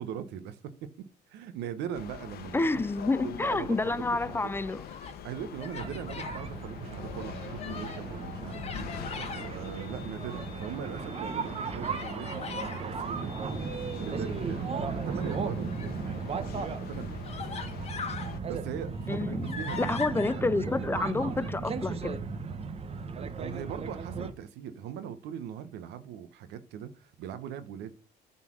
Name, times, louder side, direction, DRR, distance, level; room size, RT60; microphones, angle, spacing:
voice 1, 0.0-4.5 5.2-8.9 9.4-13.6 14.0-17.2 18.2-20.0 20.3-20.4 20.8-20.9 23.2-27.9, right 9 dB, 85° right, 0.9 m, -40 dB
sound 1, 1.9-18.4, left 9 dB, 65° left, 1.0 m, -44 dB
voice 2, 2.5-4.8 19.1-22.2, left 3 dB, 15° left, 0.4 m, -29 dB
Human voice, 4.6-5.2 5.6-6.4 6.9-8.1 8.5-9.5 10.1-10.9 11.8-12.8 15.1-16.0 16.7-16.8 17.2-18.3 18.8-20.3, left 5 dB, 40° left, 1.8 m, -41 dB
sound 2, 5.8-24.3, right 5 dB, 35° right, 0.9 m, -36 dB
9.4 x 4.1 x 6.2 m
cardioid pair, 110°, 17 cm